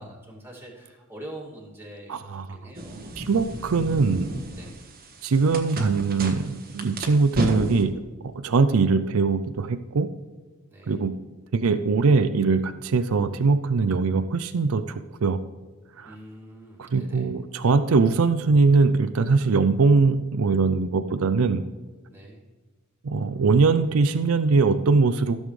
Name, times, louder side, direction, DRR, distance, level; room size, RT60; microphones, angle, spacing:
voice 1, 0.0-3.7 4.6-4.8 10.7-11.0 16.0-17.3 22.1-22.4, right 1 dB, 10° right, -3 dB, 2.4 m, -44 dB
voice 2, 2.1-2.5 3.2-4.4 5.2-7.9 8.4-10.1 10.9-11.1 11.5-15.4 16.0-16.2 16.8-21.6 23.0-25.4, right 4 dB, 65° right, 11 dB, 0.5 m, -21 dB
sound 1, 2.8-7.8, right 1 dB, 45° right, 1.3 m, -33 dB
14.5 x 7.2 x 3.2 m, 1.4 s
head